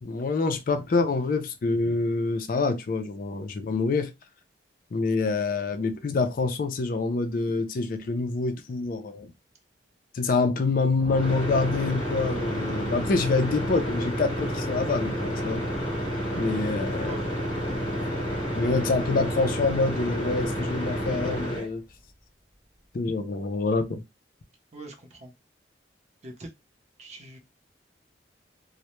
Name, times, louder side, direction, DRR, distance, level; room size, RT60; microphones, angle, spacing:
voice 1, 0.0-4.1 4.9-9.3 10.1-15.6 16.3-17.2 17.6-18.2 18.5-21.8 22.9-24.0, left 3 dB, 50° left, 0.4 m, -26 dB
sound 1, 11.0-21.7, equal, 30° left, 0.9 m, -30 dB
voice 2, 17.0-17.4 24.7-25.3 26.2-26.5 27.0-27.4, right 1 dB, 35° right, 0.6 m, -43 dB
Sliding door, 18.1-23.0, equal, 5° left, 0.7 m, -47 dB
2.1 x 2.1 x 2.9 m
head